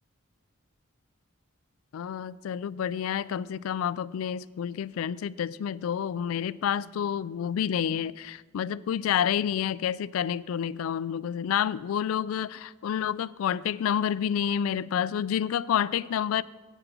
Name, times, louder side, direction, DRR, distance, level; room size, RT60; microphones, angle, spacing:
voice 1, 1.9-16.4, left 9 dB, 90° left, 0.3 m, -29 dB
8.1 x 7.7 x 5.9 m
head